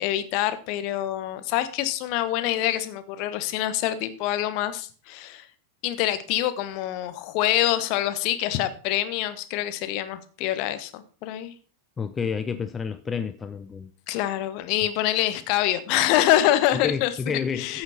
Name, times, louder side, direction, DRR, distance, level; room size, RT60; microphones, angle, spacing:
voice 1, 0.0-5.5 5.8-11.5 14.1-17.8, left 13 dB, 45° left, 1.1 m, -25 dB
voice 2, 12.0-13.9 16.7-17.8, left 6 dB, 15° left, 0.5 m, -30 dB
14.5 x 5.8 x 4.2 m
figure-of-eight pair, 90°, 0 cm